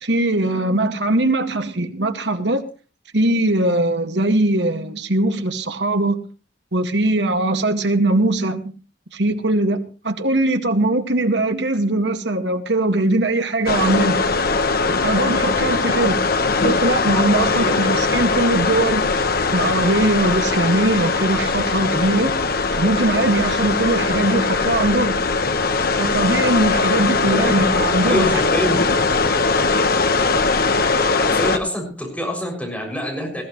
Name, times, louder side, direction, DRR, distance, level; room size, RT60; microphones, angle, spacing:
voice 1, 0.0-2.6 3.1-6.2 6.7-8.7 9.1-14.2 15.0-16.3 16.6-19.2 19.5-22.3 22.8-25.2 26.0-28.4, right 2 dB, 75° right, 2.0 m, -20 dB
sound 1, 13.7-31.6, left 4 dB, 55° left, 1.4 m, -20 dB
voice 2, 17.4-17.8 27.2-27.5 28.0-28.8 31.2-33.4, equal, 10° left, 6.8 m, -26 dB
20.5 x 15.0 x 3.2 m
head